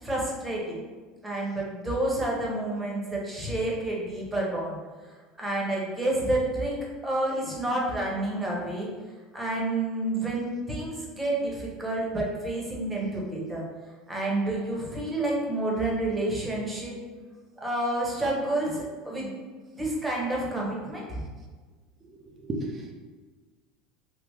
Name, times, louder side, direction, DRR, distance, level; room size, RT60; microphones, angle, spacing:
voice 1, 0.0-0.8 1.2-4.8 5.4-8.9 9.3-13.6 14.1-17.0 17.6-19.3 19.7-21.2, right 1 dB, 15° right, -3 dB, 1.1 m, -29 dB
voice 2, 22.1-22.9, right 2 dB, 30° right, 2 dB, 0.6 m, -34 dB
3.5 x 2.4 x 3.2 m, 1.4 s
hypercardioid pair, 95°, 0 cm